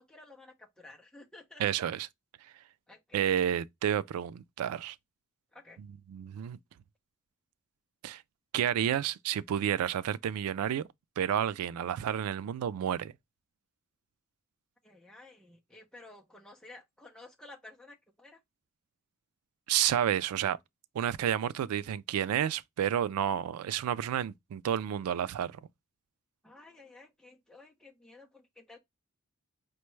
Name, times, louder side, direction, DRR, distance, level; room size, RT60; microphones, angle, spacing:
voice 1, 0.0-1.8 2.9-3.3 5.5-5.8 14.8-18.4 26.4-28.8, left 2 dB, 5° left, 0.6 m, -53 dB
voice 2, 1.6-2.1 3.1-5.0 6.1-6.6 8.0-8.2 8.5-10.9 11.2-13.1 19.7-20.6 20.9-25.6, right 10 dB, 85° right, 0.3 m, -30 dB
5.1 x 2.2 x 3.1 m
head